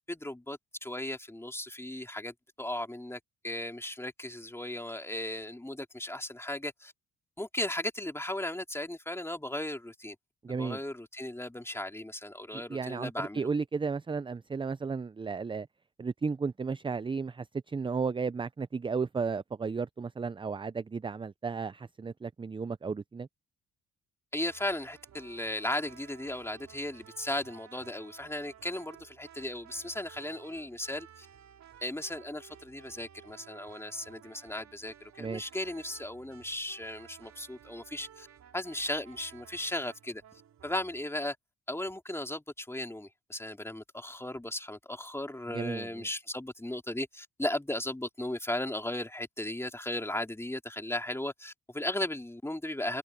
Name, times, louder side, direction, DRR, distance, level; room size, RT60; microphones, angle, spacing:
voice 1, 0.1-6.9 7.4-10.2 10.5-13.5 24.3-31.3 31.8-38.3 38.5-40.2 40.6-41.4 41.7-53.0, left 1 dB, 10° left, 3.0 m, -36 dB
voice 2, 10.4-10.8 12.5-15.7 16.0-23.3 35.2-35.4 45.5-45.9, right 5 dB, 15° right, 0.5 m, -34 dB
sound 1, 24.5-41.0, right 9 dB, 65° right, 3.8 m, -55 dB
cardioid pair, 75°, 29 cm